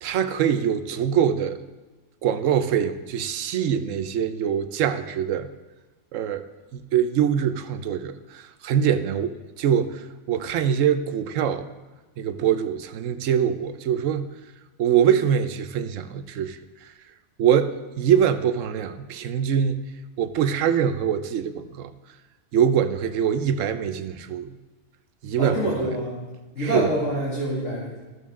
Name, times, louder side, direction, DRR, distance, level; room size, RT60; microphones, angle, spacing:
voice 1, 0.0-1.6 2.2-5.5 6.1-6.4 6.7-11.7 12.2-14.3 14.8-16.9 17.4-19.9 20.2-21.9 22.5-24.6 25.2-25.9 26.6-26.9, right 8 dB, 75° right, 10 dB, 1.0 m, -24 dB
voice 2, 25.4-26.2 26.5-28.0, right 1 dB, 65° left, -7 dB, 2.7 m, -26 dB
14.0 x 6.4 x 3.6 m, 1.2 s
omnidirectional pair, 1.4 m